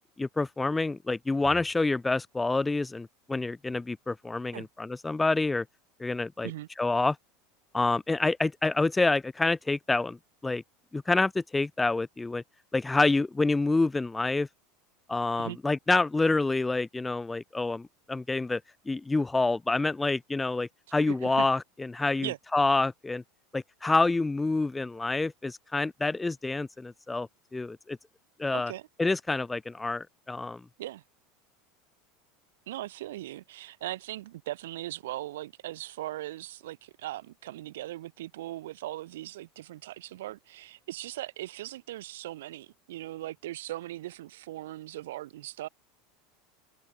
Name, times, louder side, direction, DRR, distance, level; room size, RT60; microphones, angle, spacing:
voice 1, 0.0-5.6 6.0-6.5 6.8-7.2 7.7-10.2 10.4-10.6 10.9-12.4 12.7-14.5 15.1-18.6 18.9-23.2 23.5-28.0 28.4-28.7 29.0-30.6, left 3 dB, 10° left, 0.4 m, -27 dB
voice 2, 21.1-21.5 22.2-22.4 28.5-28.9 30.8-31.0 32.7-45.7, right 15 dB, 70° right, 2.9 m, -39 dB
open air
figure-of-eight pair, 80°, 0 cm